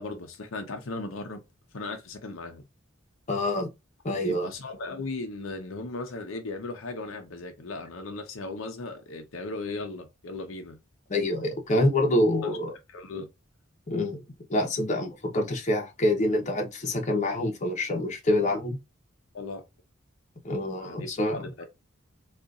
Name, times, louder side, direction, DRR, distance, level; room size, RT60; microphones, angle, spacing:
voice 1, 0.0-1.4 1.7-2.6 4.2-10.8 12.4-12.6 12.9-13.3 19.3-19.6 20.8-21.6, left 3 dB, 85° left, 0.7 m, -37 dB
voice 2, 3.3-3.7 4.0-4.5 11.1-12.7 13.9-14.2 14.5-18.8 20.4-21.4, left 1 dB, 40° left, 0.8 m, -26 dB
3.8 x 2.4 x 2.4 m
head